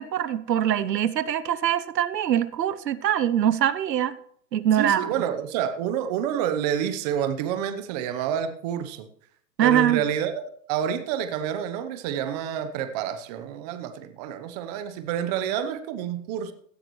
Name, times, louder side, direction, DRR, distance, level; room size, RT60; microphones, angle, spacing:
voice 1, 0.0-4.2 4.5-5.1 9.6-10.0, right 10 dB, 80° right, 0.9 m, -23 dB
voice 2, 4.7-9.1 9.6-16.5, right 9 dB, 25° right, 0.8 m, -28 dB
16.5 x 12.5 x 3.1 m
hypercardioid pair, 145°, 49 cm